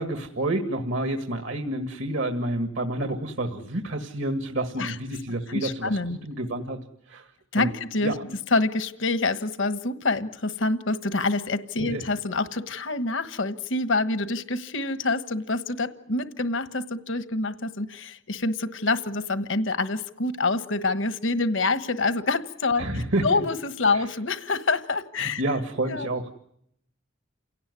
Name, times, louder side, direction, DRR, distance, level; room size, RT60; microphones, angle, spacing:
voice 1, 0.0-6.8 7.1-7.7 8.0-8.4 11.8-12.1 22.8-23.4 23.9-24.1 25.2-26.3, right 1 dB, 70° right, 6 dB, 1.9 m, -29 dB
voice 2, 5.5-6.2 7.5-8.1 8.5-25.4 25.9-26.1, left 3 dB, 70° left, 12 dB, 1.3 m, -26 dB
28.5 x 18.0 x 9.7 m, 0.75 s
head